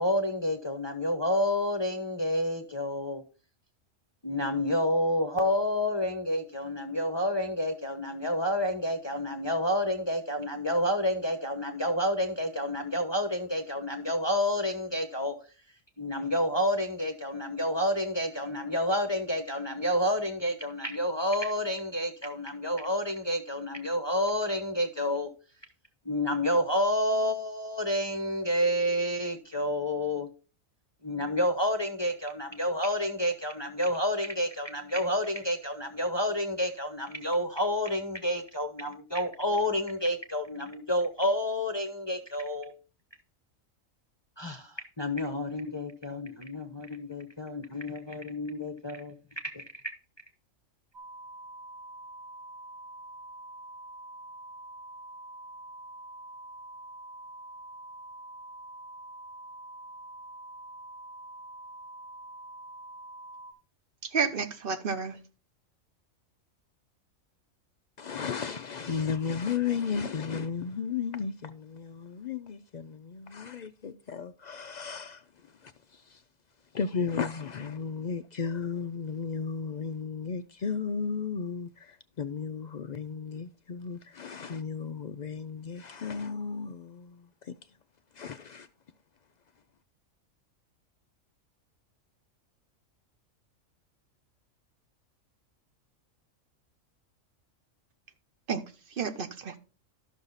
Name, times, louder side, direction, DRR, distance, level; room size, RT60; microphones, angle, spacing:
voice 1, 0.0-3.2 4.2-15.3 16.0-25.3 26.0-30.3 31.0-42.7 44.4-49.1 49.4-49.6, left 1 dB, 25° left, 0.8 m, -29 dB
sound 1, 50.9-63.5, right 1 dB, 80° right, 2.5 m, -45 dB
voice 2, 64.0-65.2 98.5-98.6 99.0-99.6, right 6 dB, 45° right, 1.0 m, -30 dB
voice 3, 68.0-76.2 76.7-87.6 88.1-88.7, left 6 dB, 75° left, 0.4 m, -34 dB
12.5 x 6.3 x 4.0 m
omnidirectional pair, 1.4 m